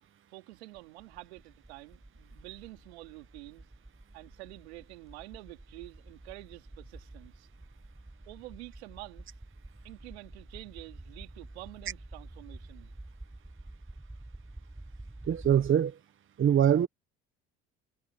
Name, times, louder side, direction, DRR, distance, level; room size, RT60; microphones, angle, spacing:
voice 1, 0.3-3.7 4.1-7.5 8.2-9.3 9.8-12.9, right 20 dB, 90° right, 3.1 m, -48 dB
sound 1, 0.7-15.7, right 1 dB, 10° right, 6.3 m, -49 dB
voice 2, 15.3-16.0 16.4-16.9, right 9 dB, 40° right, 1.1 m, -23 dB
supercardioid pair, 75°, 32 cm